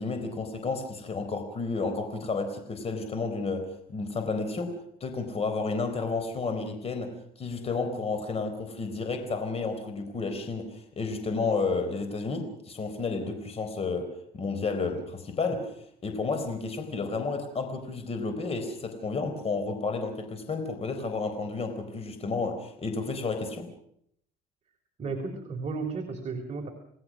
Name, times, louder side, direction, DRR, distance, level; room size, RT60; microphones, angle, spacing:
voice 1, 0.0-15.8 16.0-23.7, left 4 dB, 35° left, 7 dB, 4.1 m, -31 dB
voice 2, 25.0-26.7, right 4 dB, 40° right, 2 dB, 3.8 m, -33 dB
29.0 x 19.0 x 6.3 m, 0.70 s
cardioid pair, 110°, 17 cm